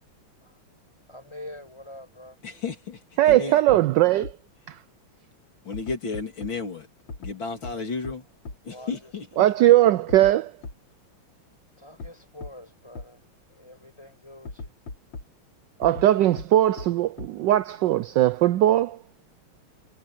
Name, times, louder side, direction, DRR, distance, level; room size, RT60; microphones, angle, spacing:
voice 1, 1.1-2.4 7.7-7.9 8.6-9.5 11.8-13.2 13.5-14.7, left 1 dB, 10° left, 7.1 m, -45 dB
voice 2, 2.4-3.0 3.3-3.6 5.7-6.9 7.2-8.2 8.6-9.5, left 4 dB, 60° left, 3.7 m, -33 dB
voice 3, 3.2-4.3 4.7-4.8 9.4-10.5 15.8-19.0, right 14 dB, 80° right, 1.0 m, -19 dB
sound 1, 3.3-3.4 3.7-3.8 4.2-4.3 5.7-6.5 7.1-7.3 7.6-7.7 8.0-8.1 8.5-8.6 10.1-10.3 10.6-10.7 12.0-12.1 12.4-12.5 13.0-13.1 14.5-15.2 15.8-16.1 16.4-16.5 16.8-16.9 17.2-17.3, left 3 dB, 85° left, 4.5 m, -37 dB
omnidirectional pair, 2.4 m